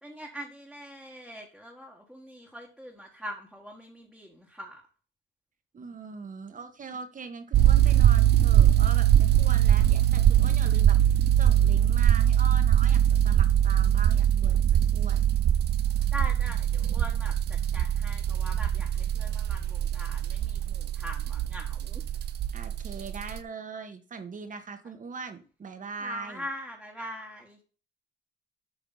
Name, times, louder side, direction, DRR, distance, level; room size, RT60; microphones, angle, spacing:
voice 1, 0.0-4.8 16.1-17.3 17.7-22.0 26.0-27.6, equal, ahead, -2 dB, 1.7 m, -42 dB
voice 2, 5.7-15.3 22.5-26.4, right 5 dB, 40° right, 7 dB, 1.4 m, -41 dB
sound 1, 7.5-23.4, right 11 dB, 55° right, 0.5 m, -22 dB
8.2 x 5.0 x 4.0 m, 0.38 s
cardioid pair, 90°, 20 cm